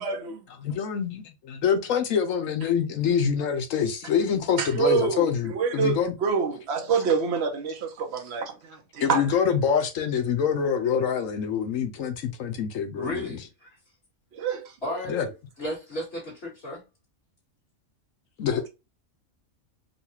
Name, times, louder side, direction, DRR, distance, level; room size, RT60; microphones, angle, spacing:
voice 1, 0.0-0.4 4.6-9.2 14.3-14.7, right 6 dB, 55° right, 1.0 m, -27 dB
voice 2, 0.6-6.1 9.0-13.4 15.1-15.3 18.4-18.7, left 7 dB, 70° left, 1.1 m, -25 dB
voice 3, 13.0-13.8 14.8-15.2 15.6-16.8, left 1 dB, 45° left, 2.1 m, -34 dB
4.0 x 2.3 x 2.8 m
omnidirectional pair, 1.4 m